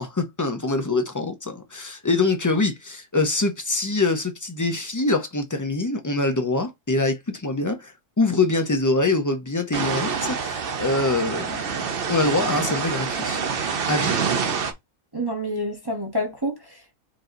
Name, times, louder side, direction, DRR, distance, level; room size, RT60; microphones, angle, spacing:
voice 1, 0.0-11.6 12.1-13.4 13.9-14.1, left 3 dB, 20° left, 0.5 m, -24 dB
sound 1, 9.7-14.7, right 6 dB, 50° right, 0.9 m, -26 dB
voice 2, 15.1-16.9, equal, 20° right, 0.8 m, -28 dB
4.6 x 2.8 x 3.9 m
omnidirectional pair, 1.4 m